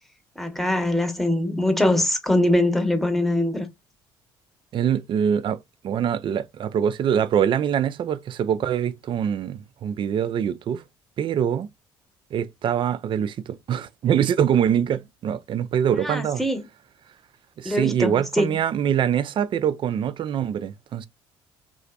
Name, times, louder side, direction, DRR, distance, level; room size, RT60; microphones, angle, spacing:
voice 1, 0.4-3.7 16.0-16.6 17.6-18.5, left 1 dB, ahead, 0.9 m, -22 dB
voice 2, 4.7-5.6 5.8-10.8 11.2-11.7 12.3-16.4 17.6-21.1, right 9 dB, 45° right, 0.3 m, -24 dB
3.9 x 2.4 x 2.3 m
hypercardioid pair, 55°, 12 cm